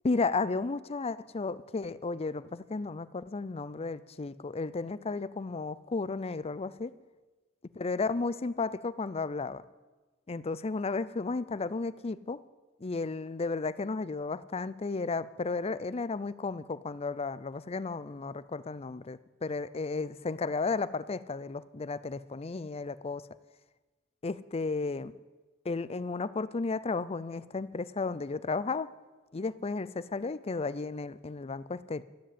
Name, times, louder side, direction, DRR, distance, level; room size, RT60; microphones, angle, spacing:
voice 1, 0.0-6.9 7.7-9.6 10.3-12.4 12.8-23.2 24.2-25.1 25.6-28.9 29.3-32.0, left 3 dB, 30° left, 16 dB, 0.5 m, -33 dB
12.5 x 12.5 x 8.6 m, 1.2 s
head